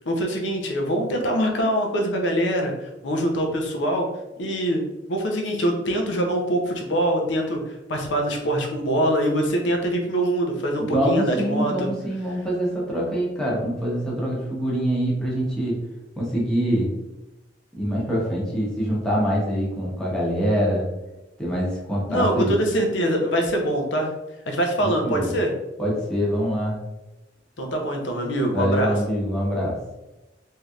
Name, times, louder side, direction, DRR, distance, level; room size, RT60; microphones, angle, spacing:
voice 1, 0.0-4.1 4.4-4.8 5.1-11.9 22.1-24.1 24.5-25.5 27.6-28.9, right 1 dB, 75° left, 2 dB, 0.6 m, -24 dB
voice 2, 10.8-15.8 16.2-16.9 17.8-20.9 21.4-22.6 24.8-25.3 25.8-26.8 28.5-29.8, equal, 5° left, -6 dB, 0.9 m, -24 dB
3.2 x 2.8 x 2.4 m, 1.0 s
head